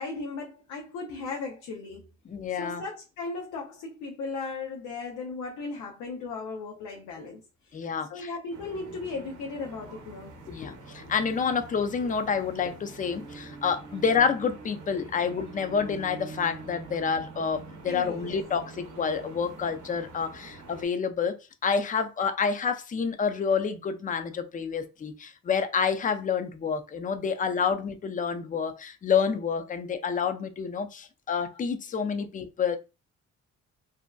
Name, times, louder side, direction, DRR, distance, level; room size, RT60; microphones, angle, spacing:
voice 1, 0.0-2.1 2.6-7.7 8.1-10.4 17.9-18.4, left 4 dB, 80° left, 0.6 m, -36 dB
voice 2, 2.3-2.8 7.7-8.3 10.5-32.8, left 6 dB, 25° left, 0.4 m, -28 dB
sound 1, 8.5-20.8, right 3 dB, 75° right, 0.7 m, -45 dB
2.6 x 2.1 x 2.2 m
cardioid pair, 90°, 30 cm